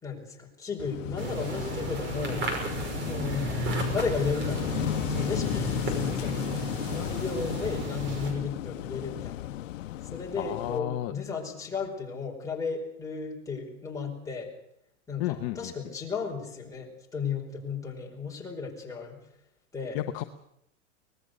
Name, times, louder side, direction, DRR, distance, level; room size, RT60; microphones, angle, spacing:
voice 1, 0.0-2.4 3.0-3.6 3.9-9.6 10.0-14.5 15.1-19.2 19.7-20.0, left 5 dB, 10° left, -1 dB, 4.8 m, -35 dB
Wind / Waves surf, 0.8-10.8, left 14 dB, 85° left, 0.9 m, -35 dB
sound 1, 1.2-8.3, right 1 dB, 30° right, 5.8 m, -33 dB
voice 2, 10.4-11.1 15.2-15.7 19.9-20.2, left 15 dB, 40° left, 8 dB, 1.0 m, -32 dB
24.5 x 19.5 x 6.7 m, 0.76 s
supercardioid pair, 150°, 37 cm